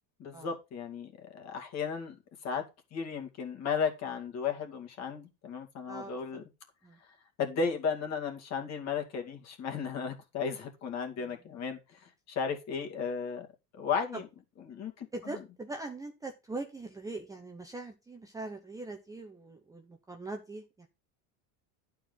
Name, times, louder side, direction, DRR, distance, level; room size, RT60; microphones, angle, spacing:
voice 1, 0.2-2.2 2.4-2.6 2.9-6.4 7.4-13.5 13.7-14.3 14.7-15.4, left 6 dB, 40° left, 5 dB, 2.4 m, -35 dB
voice 2, 15.1-20.9, right 2 dB, 10° right, 2 dB, 0.8 m, -42 dB
11.5 x 4.6 x 5.5 m, 0.26 s
cardioid pair, 165°, 43 cm